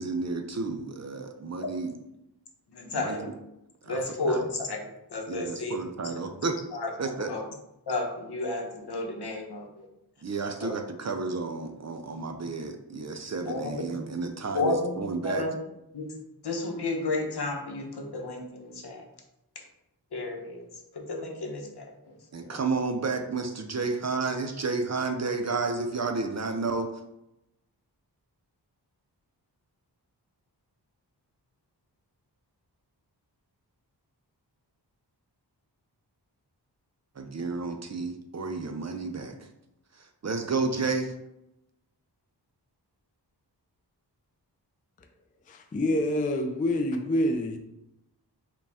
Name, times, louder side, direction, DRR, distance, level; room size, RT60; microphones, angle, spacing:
voice 1, 0.0-1.9 2.9-3.3 3.8-4.0 4.3-4.4 5.3-6.6 7.0-7.3 10.2-15.4 22.3-26.9 37.2-39.3 39.9-41.1, right 4 dB, 40° right, 0.4 m, -31 dB
voice 2, 1.6-2.0 2.7-3.4 3.8-5.8 6.1-7.5 7.9-9.9 10.6-10.8 13.4-14.0 14.5-15.5 15.9-16.2 16.4-19.0 19.5-19.6 20.1-22.6, left 2 dB, 70° left, 0.8 m, -33 dB
voice 3, 45.5-47.6, left 1 dB, 20° left, 0.3 m, -27 dB
5.0 x 2.3 x 3.4 m
wide cardioid pair, 90°, 41 cm